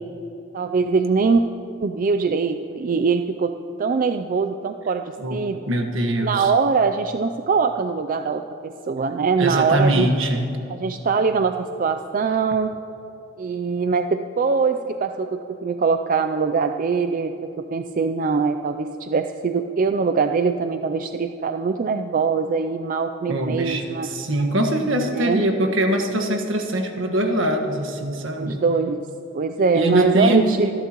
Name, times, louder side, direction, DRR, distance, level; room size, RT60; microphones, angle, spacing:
voice 1, 0.5-1.4 1.8-3.5 3.8-5.6 6.2-10.1 10.7-12.7 13.4-24.1 25.1-25.4 28.4-29.0 29.3-30.7, right 5 dB, 45° right, 8 dB, 0.4 m, -22 dB
voice 2, 5.7-6.5 9.4-10.5 23.3-28.6 29.7-30.7, right 1 dB, 70° right, 4 dB, 1.6 m, -22 dB
25.5 x 12.0 x 3.0 m, 3.0 s
head